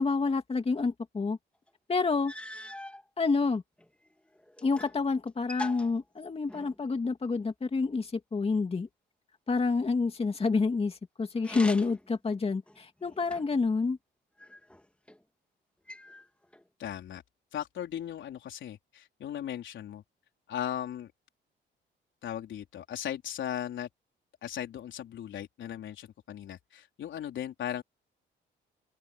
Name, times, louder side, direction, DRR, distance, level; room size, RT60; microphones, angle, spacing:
voice 1, 0.0-1.4 1.9-2.3 3.2-3.6 4.6-8.9 9.5-14.0, left 4 dB, 30° left, 2.4 m, -28 dB
sound 1, 1.7-1.8 2.2-3.0 3.8-5.0 5.3-6.8 11.4-12.1 12.7-13.7 14.4-15.2 15.9-16.6, left 1 dB, 5° left, 2.5 m, -43 dB
voice 2, 16.8-17.2 17.5-20.0 20.5-21.1 22.2-23.9 24.4-27.8, left 10 dB, 70° left, 4.4 m, -37 dB
open air
cardioid pair, 90°, 20 cm